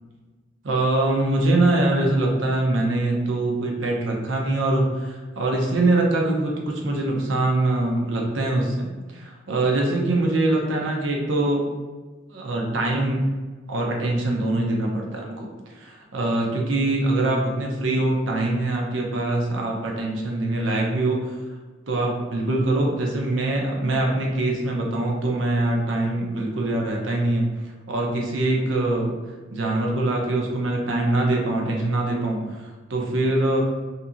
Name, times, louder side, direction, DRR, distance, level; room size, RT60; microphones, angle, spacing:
voice 1, 0.6-8.9 9.1-11.6 12.3-13.2 13.7-21.4 21.9-27.5 27.9-29.1 29.5-33.6, right 2 dB, 80° right, 0 dB, 0.6 m, -23 dB
2.8 x 2.7 x 2.4 m, 1.3 s
head